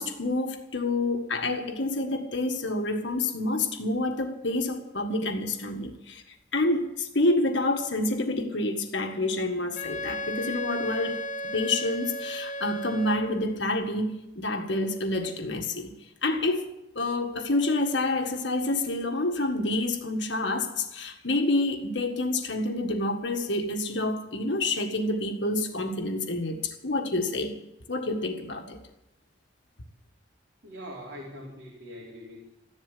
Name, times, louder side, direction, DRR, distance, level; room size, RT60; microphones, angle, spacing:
voice 1, 0.0-6.2 6.5-11.2 11.5-15.9 16.2-16.7 16.9-27.6 27.9-28.8, left 2 dB, 75° left, 4 dB, 1.7 m, -28 dB
Wind instrument woodwind instrument, 9.7-13.5, left 1 dB, 40° left, 0.8 m, -35 dB
voice 2, 30.6-32.5, equal, 65° right, -4 dB, 3.9 m, -42 dB
14.5 x 11.5 x 8.4 m, 0.87 s
head